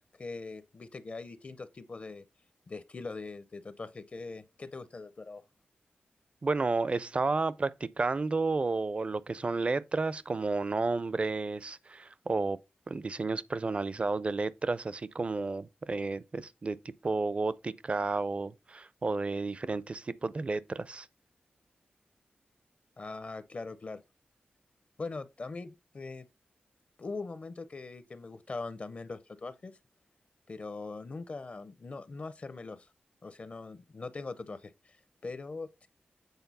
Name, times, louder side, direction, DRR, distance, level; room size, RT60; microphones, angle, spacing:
voice 1, 0.0-2.2 2.7-5.4 23.0-24.0 25.0-26.3 27.0-29.8 30.5-32.9 33.2-35.9, left 3 dB, 45° left, 0.5 m, -41 dB
voice 2, 6.4-12.6 12.9-16.8 17.0-21.1, right 3 dB, 35° right, 0.4 m, -31 dB
8.1 x 4.3 x 4.1 m
wide cardioid pair, 110°, 3 cm